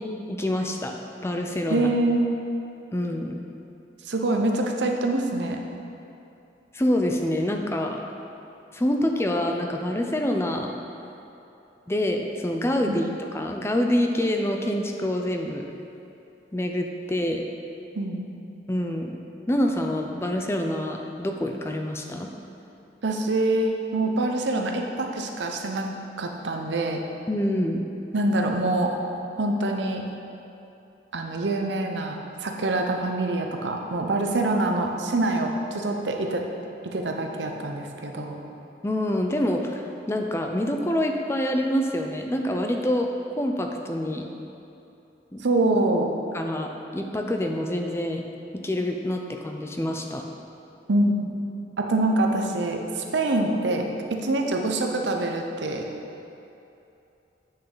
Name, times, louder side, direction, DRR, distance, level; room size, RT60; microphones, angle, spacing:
voice 1, 0.3-0.9 1.2-1.9 2.9-3.4 6.7-8.0 8.7-10.7 11.9-15.7 16.5-17.4 18.7-19.2 19.5-22.3 27.3-27.8 38.8-44.3 45.3-45.4 46.3-48.2 48.6-50.2, left 1 dB, 15° left, 3 dB, 0.4 m, -26 dB
voice 2, 1.7-2.3 4.1-5.6 12.9-13.0 17.9-18.2 23.0-25.9 26.2-27.0 28.1-28.9 29.4-30.0 31.1-36.4 36.9-38.4 45.4-46.1 50.9-51.4 51.8-55.9, right 2 dB, 85° right, 3 dB, 0.8 m, -25 dB
8.1 x 6.6 x 3.9 m, 2.9 s
head